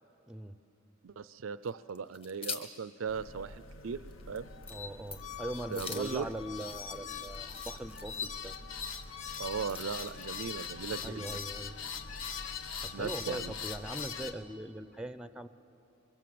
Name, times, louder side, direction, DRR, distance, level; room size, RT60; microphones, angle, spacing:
voice 1, 0.3-0.6 4.7-8.5 11.0-11.8 12.8-15.5, right 1 dB, 5° right, 12 dB, 0.5 m, -41 dB
voice 2, 1.0-4.0 4.3-4.5 5.7-6.3 9.4-11.4 12.9-13.5, right 6 dB, 80° right, 16 dB, 0.5 m, -38 dB
sound 1, 1.6-2.8 3.2-3.3 3.7-3.8 4.1-4.4 4.6-4.8 5.1-5.3 5.7-8.0 8.9-10.4, left 4 dB, 30° left, 1.5 m, -44 dB
sound 2, 3.1-14.3, left 6 dB, 70° left, 1.1 m, -41 dB
23.5 x 23.5 x 7.8 m, 2.9 s
head